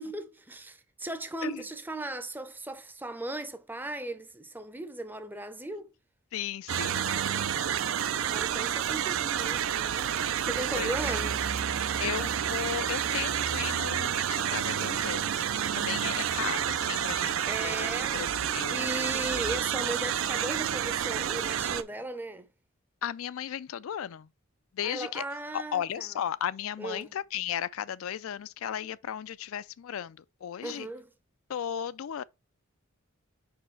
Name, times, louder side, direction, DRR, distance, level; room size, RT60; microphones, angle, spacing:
voice 1, 0.0-5.9 8.3-10.1 10.4-11.4 17.5-22.5 24.8-26.1 26.8-27.1 30.6-31.1, right 2 dB, 10° right, 0.5 m, -37 dB
voice 2, 6.3-7.8 10.7-11.1 11.8-15.4 15.7-18.8 23.0-24.3 24.7-25.2 25.5-30.9 31.5-32.2, left 9 dB, 75° left, 0.4 m, -36 dB
sound 1, 6.7-21.8, right 9 dB, 70° right, 0.4 m, -29 dB
5.0 x 4.6 x 4.5 m
head